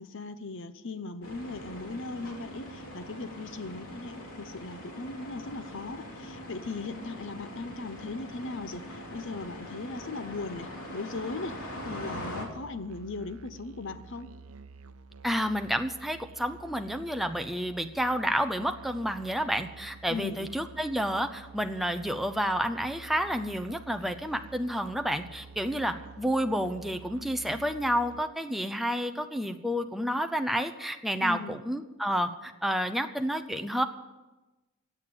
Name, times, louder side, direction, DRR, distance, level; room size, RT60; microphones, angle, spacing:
voice 1, 0.0-14.3 20.1-20.5 31.2-31.6, left 3 dB, 60° left, 12 dB, 0.9 m, -38 dB
sound 1, 1.2-12.5, left 1 dB, 85° left, 3.2 m, -42 dB
Musical instrument, 11.8-28.3, right 4 dB, 80° right, 0.7 m, -50 dB
voice 2, 15.2-33.8, equal, ahead, 6 dB, 0.6 m, -30 dB
16.5 x 9.0 x 7.8 m, 1.1 s
head